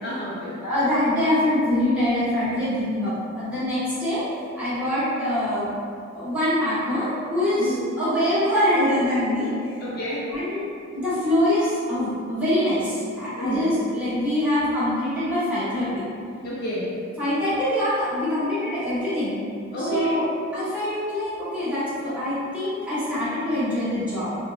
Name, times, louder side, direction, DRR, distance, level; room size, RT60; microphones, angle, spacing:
voice 1, 0.0-0.5 7.6-7.9 9.8-10.3 13.3-13.6 16.4-16.9 19.7-20.1, equal, 50° left, -7 dB, 0.4 m, -29 dB
voice 2, 0.6-4.2 4.5-5.7 6.1-9.7 10.3-10.7 10.9-16.2 17.2-19.4 19.7-20.2 20.5-24.4, left 1 dB, 5° right, -14 dB, 1.0 m, -24 dB
3.2 x 2.0 x 2.4 m, 2.4 s
head